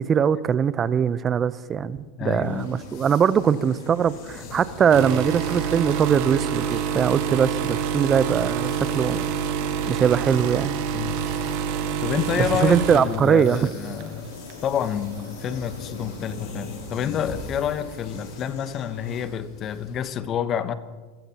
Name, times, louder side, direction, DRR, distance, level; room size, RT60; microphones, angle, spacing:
voice 1, 0.0-9.3 9.9-10.8 12.4-13.7, right 7 dB, 30° right, 17 dB, 0.6 m, -21 dB
voice 2, 2.2-2.7 10.9-11.2 12.0-14.3 14.6-20.7, left 8 dB, 40° left, 12 dB, 1.0 m, -28 dB
sound 1, 2.4-19.2, left 4 dB, 85° left, 2.3 m, -44 dB
sound 2, 2.6-20.1, left 3 dB, 55° left, 3.5 m, -43 dB
sound 3, 4.9-14.1 14.5-14.8 15.7-15.8, right 7 dB, 60° right, 1.4 m, -27 dB
27.0 x 16.0 x 2.9 m, 1.4 s
hypercardioid pair, 95°, 0 cm